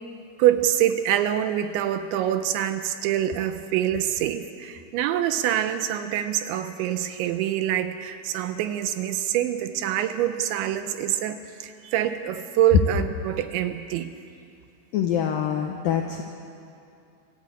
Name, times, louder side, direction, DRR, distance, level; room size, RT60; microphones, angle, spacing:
voice 1, 0.4-14.1, right 11 dB, 80° right, 9 dB, 2.9 m, -25 dB
voice 2, 14.9-16.2, left 9 dB, 80° left, 3 dB, 2.0 m, -25 dB
25.0 x 14.5 x 8.4 m, 2.5 s
omnidirectional pair, 5.6 m